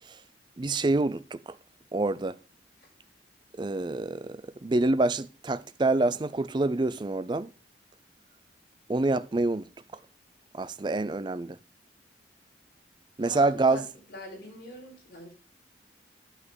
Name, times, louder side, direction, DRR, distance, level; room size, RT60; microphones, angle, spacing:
voice 1, 0.6-1.4 1.9-2.4 3.6-7.5 8.9-9.7 10.5-11.6 13.2-13.9, right 2 dB, 25° right, 0.4 m, -26 dB
voice 2, 13.2-13.8 14.1-15.4, left 1 dB, 55° left, 4.7 m, -43 dB
11.0 x 5.8 x 3.8 m
head